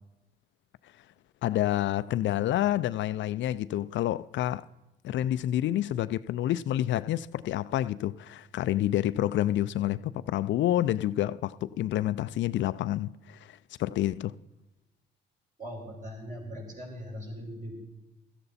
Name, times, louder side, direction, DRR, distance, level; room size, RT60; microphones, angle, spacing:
voice 1, 1.4-4.7 5.0-14.3, left 13 dB, 70° left, 0.4 m, -28 dB
voice 2, 15.6-17.7, equal, 40° right, 5.1 m, -40 dB
15.0 x 12.0 x 4.2 m
cardioid pair, 90°, 20 cm